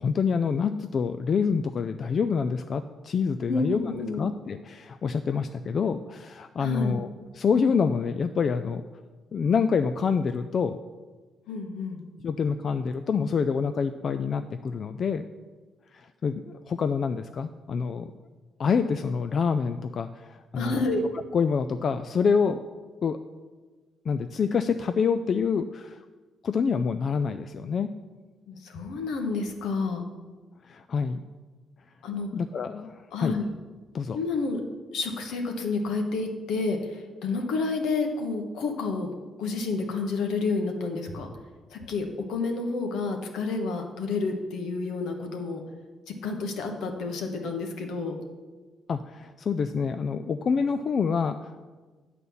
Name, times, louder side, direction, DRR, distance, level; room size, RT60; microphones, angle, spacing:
voice 1, 0.0-7.1 7.3-8.8 9.3-10.8 12.2-15.2 15.9-18.1 18.6-20.8 21.3-22.6 23.0-23.2 24.1-26.0 26.4-27.9 30.6-31.2 32.3-33.4 33.9-34.2 48.9-51.6, left 6 dB, 50° left, 9 dB, 0.3 m, -27 dB
voice 2, 3.5-4.3 6.6-7.0 11.5-12.0 20.6-21.1 28.5-30.0 32.0-32.3 33.1-33.5 34.1-34.6 34.9-39.1 39.4-41.3 41.7-45.6 46.1-48.2, left 3 dB, 80° left, 3 dB, 1.2 m, -29 dB
9.3 x 4.2 x 7.0 m, 1.4 s
cardioid pair, 90°, 0 cm